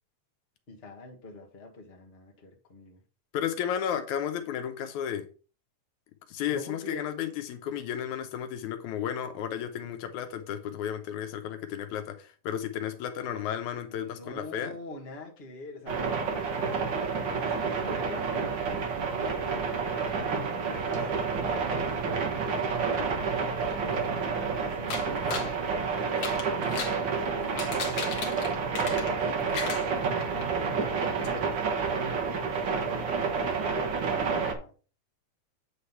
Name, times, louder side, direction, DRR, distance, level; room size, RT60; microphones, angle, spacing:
voice 1, 0.7-3.0 6.5-7.3 13.9-18.5 18.9-21.2 21.5-24.2 24.6-27.7 28.2-31.7 32.4-34.7, left 2 dB, 30° left, 1.3 m, -45 dB
voice 2, 3.3-5.3 6.3-14.8, left 9 dB, 85° left, 2.3 m, -33 dB
sound 1, 15.9-34.5, right 5 dB, 50° right, 1.5 m, -29 dB
sound 2, 24.9-25.5 26.1-27.0 27.4-29.2 29.5-30.4 30.8-30.9 31.2-31.3, left 5 dB, 55° left, 2.1 m, -35 dB
8.9 x 3.4 x 5.7 m
omnidirectional pair, 3.3 m